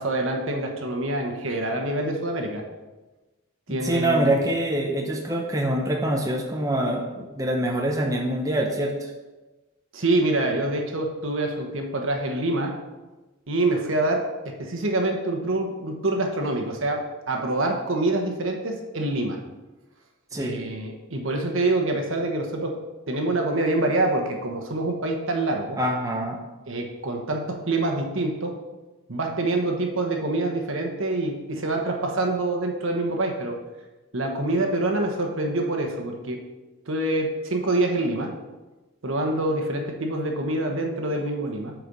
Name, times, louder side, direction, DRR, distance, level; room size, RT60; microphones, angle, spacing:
voice 1, 0.0-2.6 3.7-4.4 9.9-12.8 13.5-19.4 20.4-22.8 23.1-25.8 26.7-28.6 29.1-33.6 34.1-36.4 36.9-38.3 39.0-41.7, right 2 dB, 65° right, 3 dB, 1.2 m, -26 dB
voice 2, 3.7-9.1 20.3-20.6 25.8-26.4, right 1 dB, 15° right, 0 dB, 0.7 m, -25 dB
8.2 x 4.7 x 5.3 m, 1.1 s
head